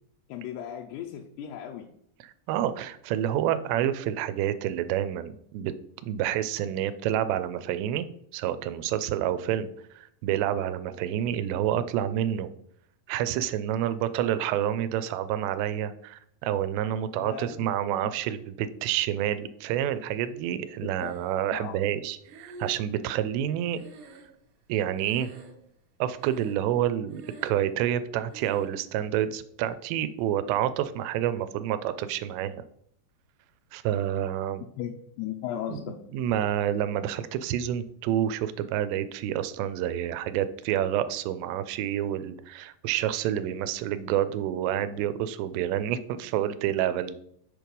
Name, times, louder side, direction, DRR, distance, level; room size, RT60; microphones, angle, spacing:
voice 1, 0.3-1.9 17.2-17.7 18.0-18.1 20.8-21.2 21.5-21.8 34.8-36.0, left 10 dB, 80° left, 1 dB, 2.5 m, -36 dB
voice 2, 2.2-5.7 6.0-8.1 8.3-12.5 13.1-23.8 24.7-25.3 26.0-32.6 33.7-34.6 35.7-35.8 36.1-47.2, right 11 dB, 85° right, 12 dB, 2.8 m, -28 dB
Breathing, 21.0-21.7 22.2-24.7 25.0-25.8 26.2-26.8 27.0-27.7 28.3-28.8, right 2 dB, 65° right, 2.1 m, -47 dB
7.1 x 4.7 x 5.2 m, 0.69 s
omnidirectional pair, 4.9 m